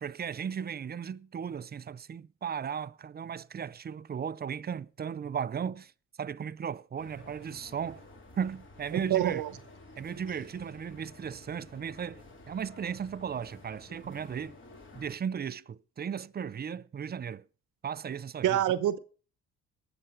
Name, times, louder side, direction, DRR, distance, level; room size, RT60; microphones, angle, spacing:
voice 1, 0.0-5.9 6.2-8.0 8.4-9.4 10.0-14.6 14.9-17.4 17.8-18.6, right 7 dB, 30° right, 0.6 m, -36 dB
sound 1, 7.0-15.2, left 2 dB, 40° left, 2.8 m, -52 dB
voice 2, 9.1-9.5 18.4-19.0, right 12 dB, 80° right, 1.1 m, -26 dB
19.0 x 6.9 x 6.0 m
cardioid pair, 90°, 30 cm